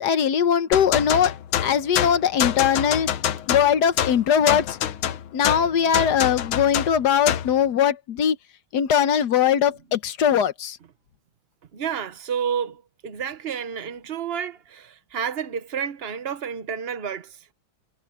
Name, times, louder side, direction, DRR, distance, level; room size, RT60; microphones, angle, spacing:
voice 1, 0.0-1.3 1.6-3.1 3.5-4.8 5.3-8.4 8.7-10.8, left 8 dB, 60° left, 1.3 m, -20 dB
sound 1, 0.7-7.6, left 10 dB, 85° left, 1.8 m, -26 dB
voice 2, 11.7-17.5, right 7 dB, 50° right, 0.7 m, -30 dB
omnidirectional pair, 2.2 m